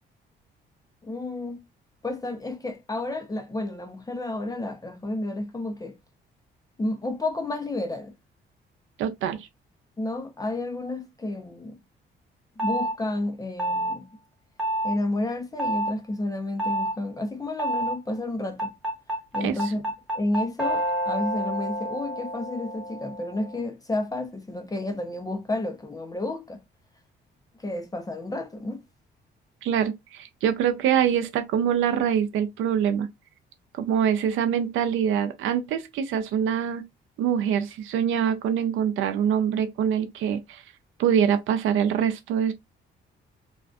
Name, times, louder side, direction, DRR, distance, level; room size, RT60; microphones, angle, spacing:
voice 1, 1.0-1.6 2.0-6.0 6.8-8.1 10.0-11.8 12.6-14.1 14.8-18.7 19.3-19.8 20.1-26.6 27.5-28.8, left 2 dB, 20° left, 0.5 m, -31 dB
voice 2, 9.0-9.5 19.4-19.5 29.6-33.1 33.8-36.8 37.2-40.6 41.0-42.5, right 8 dB, 80° right, 0.5 m, -24 dB
sound 1, 12.6-12.9 13.6-14.0 14.6-15.0 15.6-15.9 16.6-16.9 17.6-18.0 18.6-23.7, right 1 dB, 5° right, 1.2 m, -28 dB
2.4 x 2.3 x 2.3 m
cardioid pair, 90°, 20 cm